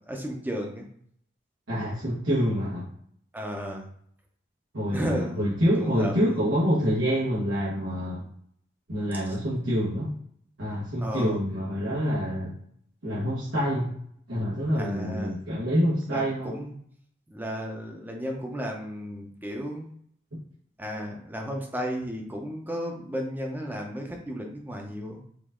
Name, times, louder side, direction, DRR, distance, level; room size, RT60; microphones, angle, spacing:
voice 1, 0.1-0.9 3.3-3.9 4.9-5.4 5.8-6.1 11.0-11.4 14.8-15.4 16.1-16.7 17.3-19.9 20.8-25.2, equal, 10° right, 1 dB, 0.7 m, -33 dB
voice 2, 1.7-2.9 4.7-8.3 8.9-10.1 10.6-12.5 13.0-13.9 14.3-16.5, equal, 80° right, -9 dB, 1.5 m, -26 dB
5.0 x 2.7 x 3.7 m, 0.65 s
head